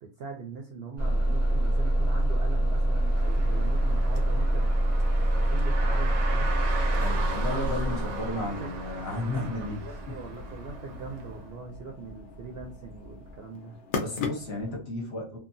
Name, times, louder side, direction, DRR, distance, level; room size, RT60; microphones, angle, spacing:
voice 1, 0.0-4.7 5.3-6.6 8.4-8.7 9.2-9.5 9.8-13.8, right 4 dB, 65° right, 1 dB, 0.6 m, -41 dB
Bus / Engine starting, 1.0-8.7, right 1 dB, 15° left, 0.5 m, -25 dB
sound 1, 1.9-14.8, left 4 dB, 85° left, 0.4 m, -42 dB
Car, 2.9-11.5, right 3 dB, 80° right, 1.0 m, -37 dB
voice 2, 6.9-10.2 14.0-15.4, left 2 dB, 50° left, -1 dB, 1.0 m, -33 dB
2.8 x 2.2 x 2.5 m, 0.40 s
omnidirectional pair, 1.4 m